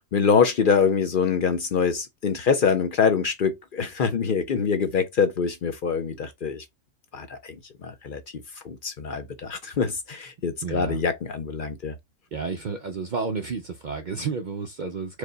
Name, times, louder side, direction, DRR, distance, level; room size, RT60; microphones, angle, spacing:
voice 1, 0.1-6.6 7.1-7.6 7.8-12.0, left 6 dB, 55° left, 0.6 m, -24 dB
voice 2, 10.6-11.0 12.3-15.2, right 5 dB, 60° right, 0.5 m, -31 dB
4.8 x 2.2 x 3.8 m
omnidirectional pair, 1.3 m